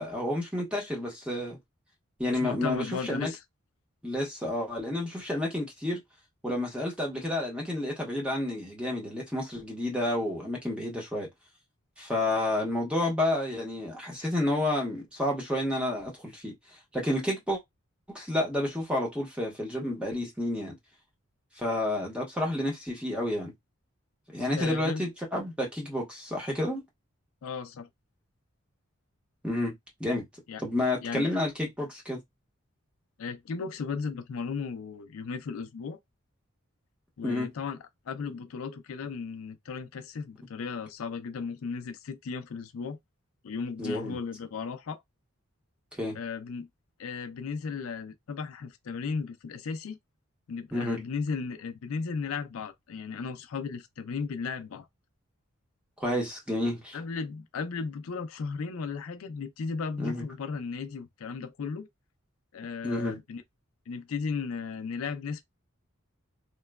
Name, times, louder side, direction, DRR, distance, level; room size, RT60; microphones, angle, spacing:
voice 1, 0.0-1.6 2.2-3.3 4.0-6.0 6.4-11.3 12.0-16.5 16.9-17.6 18.1-20.7 21.6-23.5 24.3-26.8 29.4-29.7 30.0-30.2 30.6-32.2 37.2-37.5 43.8-44.2 46.0-46.2 50.7-51.0 56.0-57.0 60.0-60.2 62.8-63.2, left 1 dB, 5° right, 0.8 m, -30 dB
voice 2, 2.3-3.4 24.6-25.0 27.4-27.9 30.5-30.6 31.0-31.3 33.2-36.0 37.2-37.8 38.1-43.0 43.4-45.0 46.1-46.7 47.0-50.0 50.5-54.9 56.9-61.9 62.5-63.4 63.9-65.4, left 5 dB, 85° left, 0.4 m, -35 dB
2.9 x 2.2 x 2.2 m
head